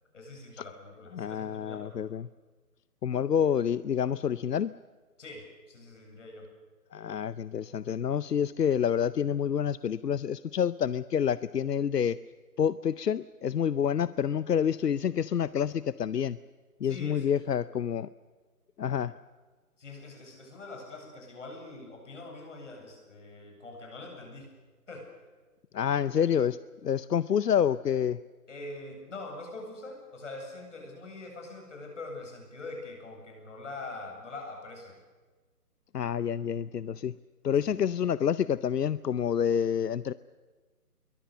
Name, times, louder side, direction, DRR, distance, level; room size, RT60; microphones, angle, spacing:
voice 1, 0.1-2.1 5.2-6.5 16.8-17.3 19.8-24.5 24.9-25.1 28.5-35.0 37.6-37.7, left 2 dB, 50° left, 2 dB, 8.0 m, -43 dB
voice 2, 1.1-2.3 3.0-4.7 6.9-12.2 12.6-16.4 16.8-18.1 18.8-19.1 25.7-28.2 35.9-37.2 37.4-40.1, left 8 dB, 90° left, 17 dB, 0.8 m, -28 dB
27.5 x 23.0 x 6.8 m, 1.3 s
hypercardioid pair, 170°, 47 cm